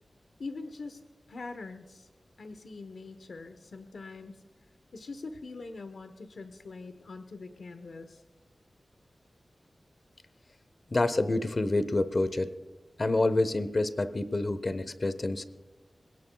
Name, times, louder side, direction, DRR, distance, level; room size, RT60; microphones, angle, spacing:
voice 1, 0.4-1.0 1.3-2.1 2.4-4.4 4.9-8.2, left 3 dB, 85° left, 8 dB, 1.0 m, -43 dB
voice 2, 10.9-12.5 13.0-15.4, left 2 dB, 40° left, 13 dB, 0.9 m, -27 dB
27.0 x 17.0 x 2.3 m, 1.3 s
wide cardioid pair, 110°, 0 cm